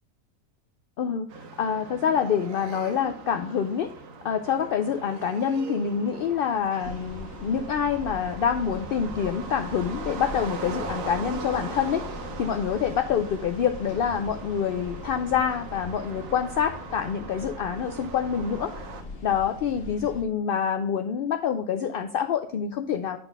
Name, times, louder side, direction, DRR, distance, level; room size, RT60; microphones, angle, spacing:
voice 1, 1.0-1.3 1.6-3.9 4.2-18.9 19.2-23.2, left 7 dB, 65° left, 7 dB, 0.5 m, -26 dB
sound 1, 1.3-19.0, right 4 dB, 75° right, 1.3 m, -40 dB
sound 2, 6.8-20.2, left 2 dB, 50° left, 1.5 m, -41 dB
9.2 x 4.0 x 5.3 m, 0.63 s
omnidirectional pair, 1.4 m